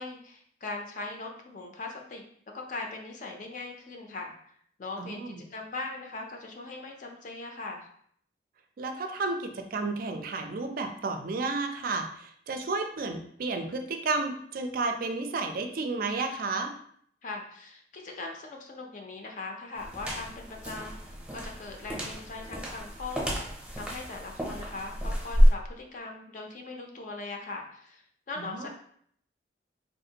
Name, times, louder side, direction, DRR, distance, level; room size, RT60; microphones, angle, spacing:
voice 1, 0.0-2.2 2.5-4.3 4.8-7.9 17.2-28.7, left 3 dB, 45° left, 2 dB, 0.4 m, -40 dB
voice 2, 5.0-5.4 8.8-16.7 28.4-28.7, right 3 dB, 50° right, 6 dB, 0.4 m, -32 dB
sound 1, 19.8-25.5, equal, 5° right, 0.7 m, -28 dB
3.5 x 2.5 x 2.8 m, 0.63 s
head